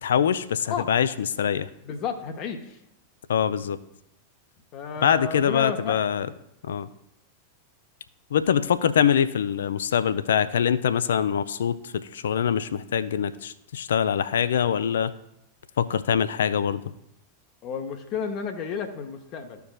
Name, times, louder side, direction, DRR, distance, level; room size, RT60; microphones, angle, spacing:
voice 1, 0.0-1.7 3.3-3.8 5.0-6.3 6.6-6.9 8.3-15.1 15.8-16.8, left 8 dB, 65° left, 14 dB, 0.4 m, -24 dB
voice 2, 1.8-2.8 4.7-6.0 17.6-19.6, left 6 dB, 40° left, 6 dB, 0.7 m, -32 dB
14.0 x 4.6 x 2.3 m, 0.80 s
figure-of-eight pair, 90°, 0 cm